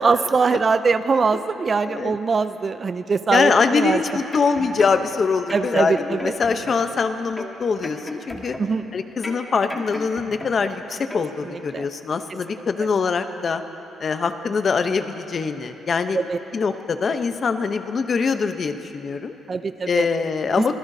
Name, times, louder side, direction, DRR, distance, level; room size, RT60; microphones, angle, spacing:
voice 1, 0.0-4.0 5.5-6.3 8.6-8.8 11.4-11.9 12.8-12.9 16.1-16.4 19.5-20.1 20.6-20.8, right 4 dB, 35° right, 11 dB, 0.5 m, -22 dB
voice 2, 3.3-8.6 8.9-13.6 14.0-16.2 16.5-19.4 19.9-20.8, left 5 dB, 45° left, 8 dB, 0.7 m, -23 dB
sound 1, 4.1-5.2 5.5-7.0 7.4-8.9 9.2-10.8 11.1-11.3, left 1 dB, 15° left, 1.6 m, -36 dB
25.0 x 16.5 x 2.7 m, 2.9 s
cardioid pair, 105°, 0 cm